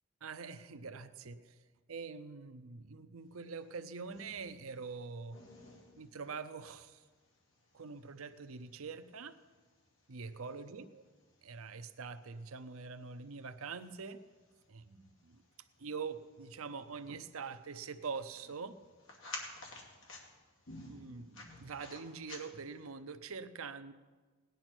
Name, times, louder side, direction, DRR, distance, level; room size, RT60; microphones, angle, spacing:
voice 1, 0.2-1.6 1.9-5.4 6.0-7.0 7.7-9.4 10.1-11.0 11.4-14.2 14.7-15.4 15.8-18.8 20.8-23.9, right 5 dB, 75° right, 11 dB, 0.7 m, -44 dB
sound 1, 3.5-22.9, left 2 dB, 65° left, 2.6 m, -55 dB
17.5 x 10.5 x 6.2 m, 1.4 s
head